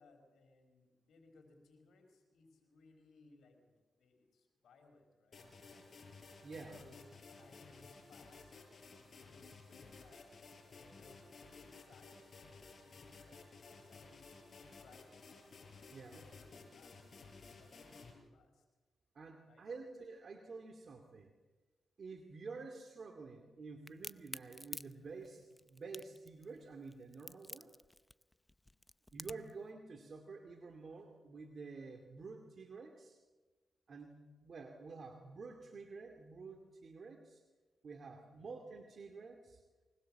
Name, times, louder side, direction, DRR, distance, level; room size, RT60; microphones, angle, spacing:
voice 1, 0.0-5.9 6.7-10.3 10.6-15.2 15.8-17.1 17.4-18.6 19.5-19.7 38.3-38.5, left 3 dB, 85° left, 4 dB, 4.8 m, -65 dB
sound 1, 5.3-18.1, left 4 dB, 55° left, 6.1 m, -56 dB
voice 2, 6.4-6.9 15.9-16.3 19.1-21.3 22.0-27.7 29.1-33.2 33.9-37.4 37.8-39.6, right 4 dB, 60° right, 4 dB, 2.4 m, -50 dB
Crack, 23.9-29.6, left 1 dB, 15° left, 0.7 m, -49 dB
24.0 x 20.0 x 7.6 m, 1.2 s
cardioid pair, 60°, 0 cm